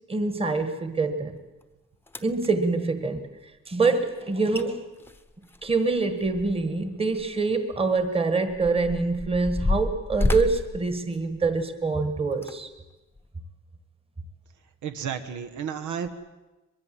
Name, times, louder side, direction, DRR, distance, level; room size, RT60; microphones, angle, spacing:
voice 1, 0.1-1.4 2.2-3.3 3.7-4.9 5.6-12.7, right 3 dB, 20° right, 9 dB, 1.6 m, -25 dB
sound 1, 1.6-1.7 2.1-2.5 4.2-4.3 4.5-4.7 5.0-6.8 7.1-7.3 8.0-11.7 12.3-12.5 13.2-13.3, left 2 dB, 10° left, 1.0 m, -30 dB
voice 2, 14.8-16.1, right 7 dB, 85° right, 8 dB, 1.8 m, -32 dB
23.0 x 23.0 x 7.7 m, 1.1 s
wide cardioid pair, 180°, 29 cm